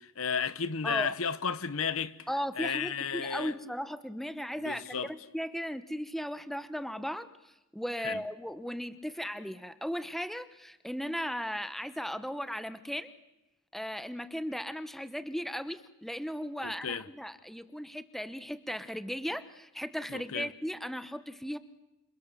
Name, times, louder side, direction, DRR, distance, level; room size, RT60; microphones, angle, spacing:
voice 1, 0.0-2.2 2.6-3.5 4.6-5.1 8.0-8.2 16.6-17.1 20.1-20.5, left 6 dB, 70° left, 1.1 m, -33 dB
voice 2, 0.8-1.1 2.3-13.1 13.7-21.6, equal, ahead, 0.9 m, -37 dB
28.5 x 27.5 x 7.0 m
head